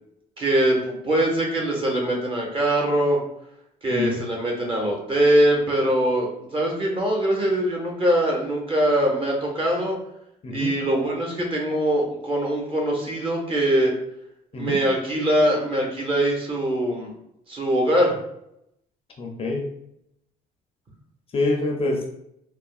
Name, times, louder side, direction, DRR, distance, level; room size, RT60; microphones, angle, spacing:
voice 1, 0.4-3.2 3.8-10.0 10.5-13.9 14.6-17.1 17.5-18.1, right 1 dB, 30° right, -1 dB, 0.8 m, -22 dB
voice 2, 19.2-19.7 21.3-22.1, left 2 dB, 35° left, 1 dB, 0.5 m, -26 dB
3.4 x 2.0 x 2.3 m, 0.79 s
cardioid pair, 110°, 17 cm